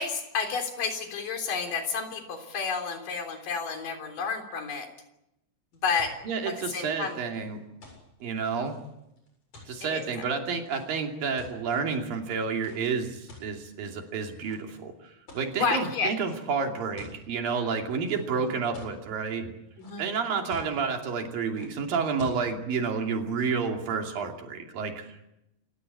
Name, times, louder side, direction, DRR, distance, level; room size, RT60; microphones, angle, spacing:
voice 1, 0.0-4.9 5.8-6.1 6.5-7.2 9.8-10.3 15.6-16.1 19.8-20.1, left 5 dB, 60° left, 5 dB, 5.1 m, -30 dB
sound 1, 5.7-11.8 12.5-12.8 13.3-14.0 14.4-14.8 15.3-15.7 16.2-16.4 16.7-17.2 18.1-19.0 19.5-20.1 20.5-20.9 21.5-21.7 22.2-22.4, left 3 dB, 40° left, 8.6 m, -48 dB
voice 2, 6.2-7.6 8.2-8.8 9.7-19.5 20.0-25.2, right 5 dB, 70° right, 3 dB, 4.4 m, -30 dB
28.0 x 16.5 x 8.6 m, 0.87 s
omnidirectional pair, 4.3 m